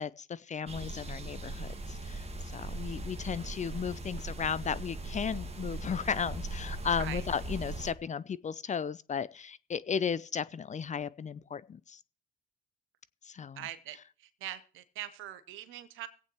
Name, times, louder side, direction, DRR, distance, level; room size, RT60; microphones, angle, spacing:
voice 1, 0.0-2.2 2.5-12.0 13.3-13.6, left 7 dB, 35° left, 0.6 m, -35 dB
sound 1, 0.7-7.9, right 2 dB, 30° right, 1.7 m, -39 dB
voice 2, 13.6-14.0 14.4-16.1, right 13 dB, 70° right, 1.0 m, -41 dB
23.5 x 8.5 x 3.0 m
hypercardioid pair, 45°, 21 cm